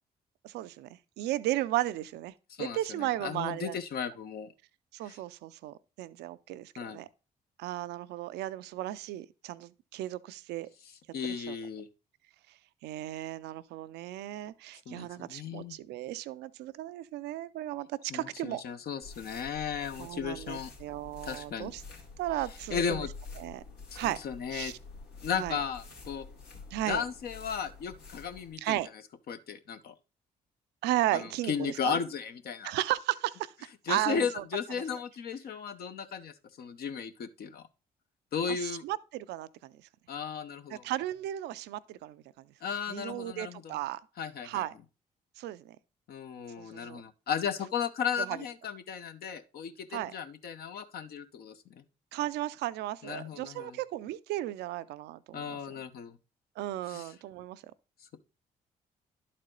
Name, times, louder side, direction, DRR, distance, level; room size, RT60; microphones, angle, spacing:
voice 1, 0.4-0.9 1.2-3.8 4.9-7.1 7.6-10.7 11.5-11.6 12.8-18.6 20.0-21.8 22.2-23.1 23.4-23.6 24.0-24.2 24.5-24.7 25.4-25.6 26.7-27.0 28.6-28.9 30.8-32.0 32.6-33.5 33.9-34.4 38.5-39.8 40.8-42.2 42.9-44.0 44.4-44.7 45.4-45.8 46.6-47.0 48.2-48.4 49.9-50.1 52.1-55.6 56.6-57.6, right 15 dB, 75° right, 0.5 m, -35 dB
voice 2, 2.6-4.5 5.0-5.2 6.8-7.0 11.1-11.9 14.9-15.7 18.1-20.7 21.2-21.7 22.7-23.1 23.9-24.7 25.2-26.2 26.8-28.8 29.3-29.9 31.1-32.7 33.9-37.7 38.3-38.8 40.1-40.8 42.6-43.8 44.2-44.6 46.1-51.8 53.0-53.8 55.3-56.2 56.9-57.1, left 7 dB, 65° left, 0.9 m, -35 dB
sound 1, 19.0-28.6, left 4 dB, 85° left, 2.2 m, -48 dB
11.0 x 4.3 x 3.8 m
hypercardioid pair, 50°, 17 cm